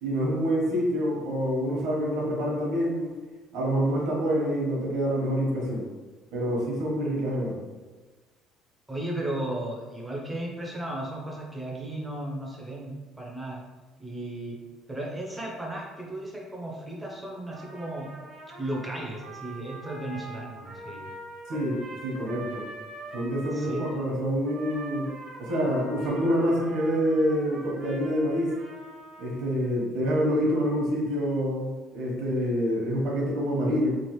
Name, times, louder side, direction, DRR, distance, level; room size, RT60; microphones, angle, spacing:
voice 1, 0.0-3.1 3.5-5.9 6.3-7.6 21.5-22.6 23.1-25.1 25.4-28.5 29.2-34.0, equal, 65° right, -3 dB, 1.0 m, -27 dB
voice 2, 8.9-13.6 14.0-14.6 14.9-18.1 18.6-21.1 23.5-23.8, right 1 dB, 5° right, -2 dB, 0.5 m, -35 dB
Trumpet, 17.5-24.0 24.4-29.8, right 2 dB, 45° right, 0.7 m, -43 dB
3.1 x 2.4 x 3.0 m, 1.3 s
cardioid pair, 165°, 0 cm